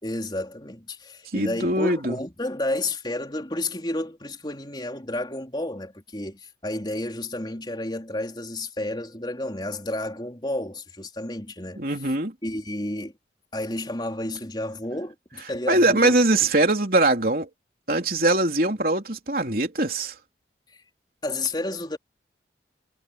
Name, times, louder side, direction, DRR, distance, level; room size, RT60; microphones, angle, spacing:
voice 1, 0.0-11.8 12.4-13.1 13.5-16.2 16.4-16.5 20.7-20.8 21.2-22.0, left 1 dB, 25° left, 3.8 m, -31 dB
voice 2, 1.3-2.1 11.8-12.3 15.7-17.5 17.9-20.1, right 2 dB, 50° right, 3.8 m, -22 dB
head